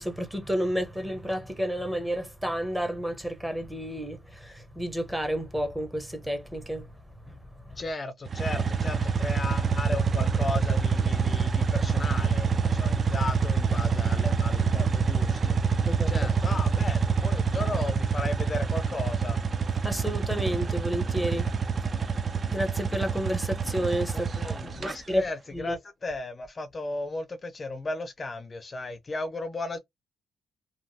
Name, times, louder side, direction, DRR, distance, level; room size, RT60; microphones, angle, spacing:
voice 1, 0.0-6.9 7.3-7.4 7.7-7.8 15.8-16.1 16.5-16.6 19.8-21.5 22.5-25.2 25.5-25.8, equal, 5° right, 0.8 m, -31 dB
voice 2, 7.8-19.4 24.1-29.8, left 2 dB, 30° left, 0.4 m, -35 dB
sound 1, 8.3-24.9, right 6 dB, 40° right, 0.5 m, -26 dB
3.0 x 2.3 x 2.7 m
cardioid pair, 90°, 0 cm